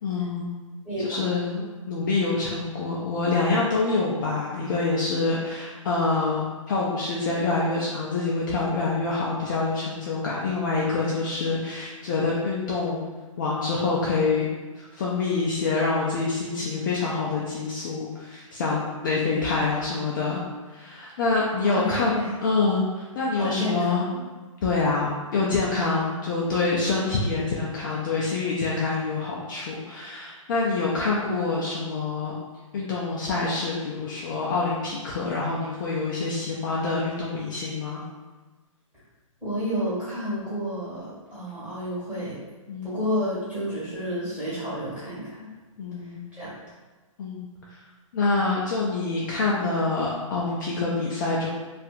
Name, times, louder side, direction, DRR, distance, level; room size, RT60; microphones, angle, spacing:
voice 1, 0.0-0.5 1.0-13.0 13.4-14.5 14.7-20.4 20.7-24.1 24.6-32.3 32.7-38.0 42.7-43.0 45.8-46.2 47.2-47.8 48.1-51.5, left 3 dB, 35° left, -5 dB, 0.4 m, -26 dB
voice 2, 0.8-1.3 21.6-22.3 23.4-24.2 39.4-42.4 42.8-45.5 46.0-46.5, equal, 5° right, -13 dB, 1.5 m, -30 dB
2.7 x 2.4 x 2.4 m, 1.3 s
hypercardioid pair, 150°, 18 cm